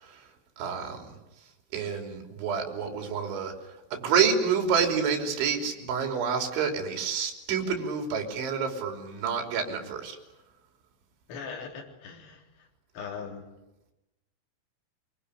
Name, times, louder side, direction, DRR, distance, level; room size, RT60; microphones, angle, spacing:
voice 1, 0.6-1.1 1.7-3.5 3.9-10.2, right 6 dB, 65° right, 4 dB, 5.7 m, -28 dB
voice 2, 11.3-12.7 12.9-13.5, left 5 dB, 85° left, 0 dB, 6.4 m, -40 dB
25.0 x 24.0 x 9.9 m, 0.96 s
omnidirectional pair, 5.8 m